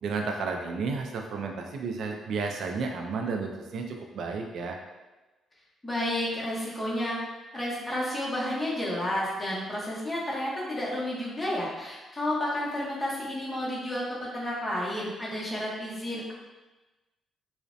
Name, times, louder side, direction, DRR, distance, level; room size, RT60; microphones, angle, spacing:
voice 1, 0.0-4.8, right 4 dB, 70° right, 3 dB, 0.3 m, -32 dB
voice 2, 5.8-7.2 7.5-16.3, left 1 dB, 15° left, -6 dB, 0.8 m, -31 dB
2.5 x 2.0 x 2.5 m, 1.1 s
cardioid pair, 90°, 0 cm